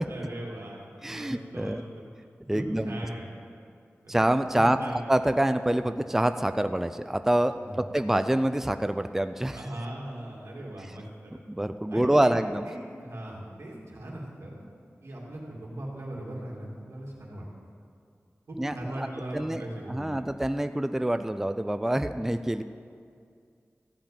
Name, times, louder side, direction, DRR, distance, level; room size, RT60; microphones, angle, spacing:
voice 1, 0.1-2.0 2.5-3.3 4.0-4.1 4.5-5.0 7.6-7.8 9.5-11.3 11.9-12.4 12.7-14.7 15.0-17.5 18.5-20.3, right 1 dB, 85° right, -4 dB, 2.5 m, -39 dB
voice 2, 1.0-1.8 2.5-3.0 4.1-9.6 11.5-12.7 18.6-19.1 19.3-19.6 19.9-22.6, right 1 dB, 10° right, 10 dB, 0.3 m, -26 dB
14.5 x 5.1 x 8.8 m, 2.3 s
wide cardioid pair, 85°, 5 cm